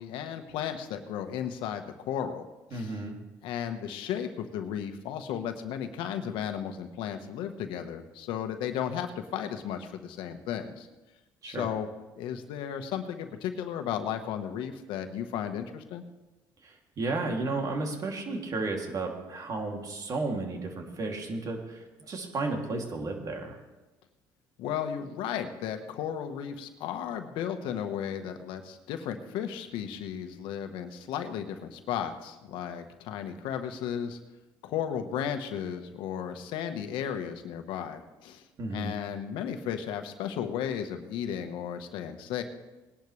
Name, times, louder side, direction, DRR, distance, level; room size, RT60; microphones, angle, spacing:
voice 1, 0.0-3.0 3.4-10.9 11.4-11.9 12.2-16.0 24.6-34.2 34.6-38.4 38.7-42.4, left 9 dB, 80° left, 7 dB, 1.3 m, -34 dB
voice 2, 2.7-3.2 11.4-11.7 16.6-23.6 38.6-38.9, right 3 dB, 45° right, 1 dB, 2.8 m, -33 dB
20.0 x 11.0 x 3.3 m, 1.1 s
supercardioid pair, 90°, 9 cm